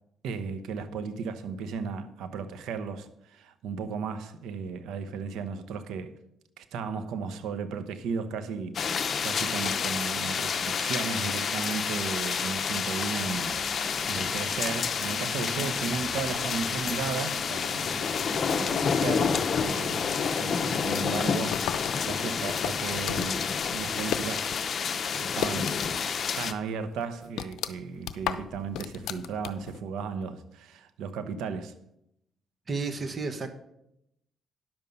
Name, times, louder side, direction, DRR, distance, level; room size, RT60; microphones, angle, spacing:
voice 1, 0.2-6.2 6.6-13.6 14.0-18.0 18.6-24.5 25.2-25.7 26.4-31.7, right 5 dB, 85° right, 0.9 m, -35 dB
sound 1, 8.7-26.5, left 6 dB, 50° left, 0.8 m, -29 dB
sound 2, 13.2-18.9, right 3 dB, 65° right, 1.4 m, -44 dB
sound 3, 21.5-24.6 24.9-26.1 26.4-26.5 27.0-29.8, left 10 dB, 85° left, 0.6 m, -35 dB
voice 2, 32.7-33.5, right 4 dB, 35° right, 1.2 m, -32 dB
10.5 x 7.0 x 5.4 m
cardioid pair, 90°, 0 cm